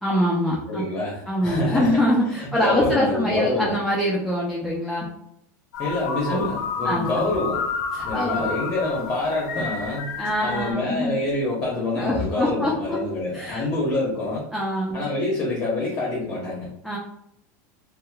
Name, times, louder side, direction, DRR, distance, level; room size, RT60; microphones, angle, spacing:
voice 1, 0.0-0.8 1.3-5.1 6.3-6.5 6.8-7.3 7.9-8.5 9.6-9.7 10.2-11.2 11.9-13.0 13.3-13.7 14.5-15.1 16.8-17.0, equal, ahead, -5 dB, 0.4 m, -24 dB
voice 2, 0.7-1.9 2.4-3.7 5.8-7.6 8.0-14.4 14.9-16.7, left 2 dB, 30° left, -5 dB, 0.8 m, -26 dB
sound 1, 5.7-10.7, left 5 dB, 90° left, 0.5 m, -30 dB
2.8 x 2.1 x 2.2 m, 0.75 s
supercardioid pair, 130°, 9 cm